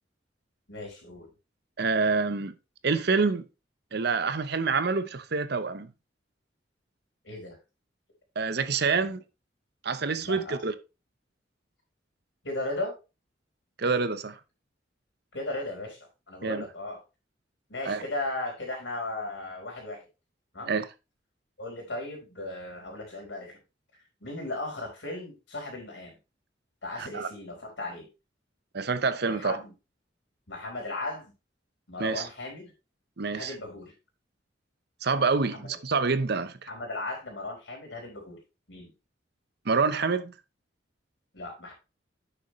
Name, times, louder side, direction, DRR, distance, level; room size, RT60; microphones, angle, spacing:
voice 1, 0.7-1.3 7.2-7.6 8.9-9.1 10.2-10.6 12.4-12.9 15.3-17.0 17.7-20.0 20.5-20.8 21.6-23.6 24.2-26.2 26.8-28.1 29.3-29.7 30.5-31.3 31.9-32.7 33.3-33.9 35.5-35.8 36.7-38.4 38.7-38.9 41.3-41.7, left 2 dB, 80° left, 4.5 m, -36 dB
voice 2, 1.8-2.5 2.8-3.4 3.9-5.9 8.4-9.2 9.8-10.7 13.8-14.4 16.4-16.6 17.9-18.0 20.7-20.9 27.0-27.3 28.7-29.6 32.0-32.3 33.2-33.5 35.0-36.6 39.7-40.3, right 4 dB, 60° right, 0.8 m, -27 dB
9.2 x 6.7 x 3.1 m
head